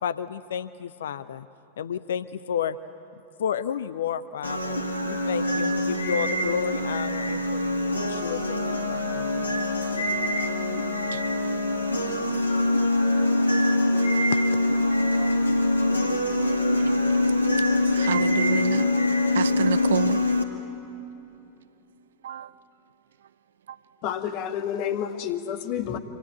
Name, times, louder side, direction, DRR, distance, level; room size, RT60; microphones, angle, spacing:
voice 1, 0.0-1.5 1.8-2.8 3.4-9.5 14.3-14.4, left 8 dB, 60° left, 0.6 m, -31 dB
sound 1, 4.4-20.4, left 2 dB, 85° left, 2.0 m, -24 dB
voice 2, 18.0-18.9 19.3-20.2 22.2-22.5, right 10 dB, 60° right, 0.6 m, -28 dB
voice 3, 24.0-26.0, left 9 dB, 45° left, 1.8 m, -29 dB
28.0 x 25.5 x 8.0 m
figure-of-eight pair, 90°, 0 cm